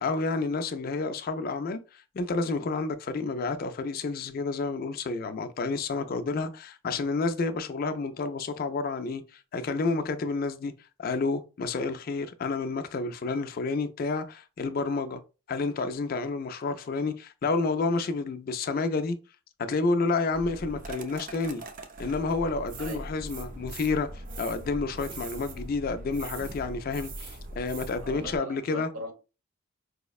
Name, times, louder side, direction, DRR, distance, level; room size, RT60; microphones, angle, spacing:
voice 1, 0.0-10.7 11.0-15.2 15.5-19.2 19.6-21.6 22.0-28.9, left 3 dB, 40° left, 0.3 m, -30 dB
sound 1, 20.3-28.4, right 2 dB, 40° right, 0.4 m, -41 dB
voice 2, 22.8-23.1 28.0-29.1, equal, 90° right, 0.8 m, -40 dB
4.8 x 2.0 x 2.3 m
head